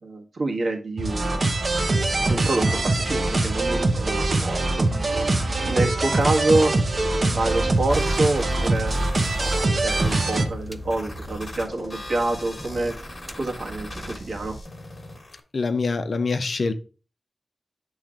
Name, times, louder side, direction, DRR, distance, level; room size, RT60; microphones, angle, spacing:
voice 1, 0.0-1.5 2.3-4.9 5.6-6.8 7.2-9.0 9.4-12.9 13.3-14.5, right 2 dB, 65° right, 1.4 m, -27 dB
sound 1, 1.0-10.4, right 2 dB, 45° right, 0.8 m, -23 dB
sound 2, 1.7-14.6, right 2 dB, 10° right, 0.4 m, -36 dB
sound 3, 7.4-15.4, left 2 dB, 35° left, 1.3 m, -40 dB
voice 2, 15.5-16.7, left 4 dB, 55° left, 0.6 m, -24 dB
7.3 x 3.1 x 5.0 m
wide cardioid pair, 130°, 0 cm